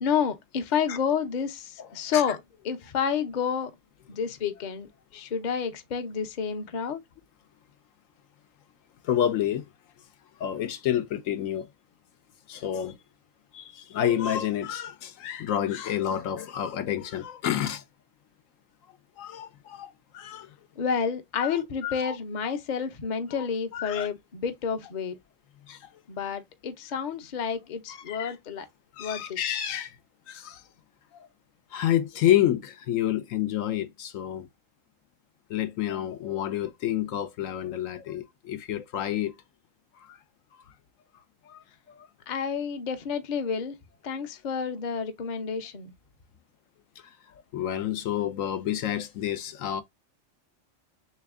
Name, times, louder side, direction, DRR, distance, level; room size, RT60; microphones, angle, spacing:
voice 1, 0.0-2.4 2.6-3.7 4.1-7.0 20.8-25.2 26.1-28.7 29.0-29.4 42.3-43.8 44.0-45.9, left 6 dB, 45° left, 0.7 m, -30 dB
voice 2, 1.8-2.4 9.0-9.7 10.4-11.7 12.5-13.0 13.5-17.8 19.2-20.5 21.4-22.2 23.4-23.5 23.7-24.1 25.7-25.9 27.9-28.3 28.9-30.0 30.3-30.6 31.1-31.3 31.7-34.5 35.5-39.3 40.0-40.2 41.4-42.1 47.5-49.8, left 11 dB, 80° left, 1.0 m, -29 dB
3.4 x 3.0 x 3.5 m
omnidirectional pair, 1.4 m